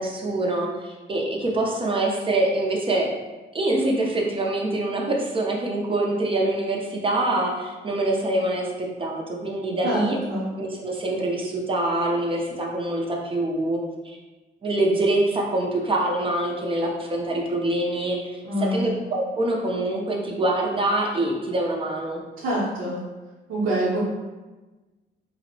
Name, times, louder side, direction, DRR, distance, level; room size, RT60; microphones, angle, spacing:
voice 1, 0.0-3.1 3.5-10.2 10.6-14.2 14.6-18.4 18.7-22.2, right 1 dB, 25° right, -1 dB, 0.4 m, -25 dB
voice 2, 9.8-10.5 18.4-18.9 22.4-23.0 23.5-24.0, right 1 dB, 75° right, -10 dB, 0.7 m, -25 dB
2.6 x 2.0 x 2.6 m, 1.2 s
cardioid pair, 90°, 20 cm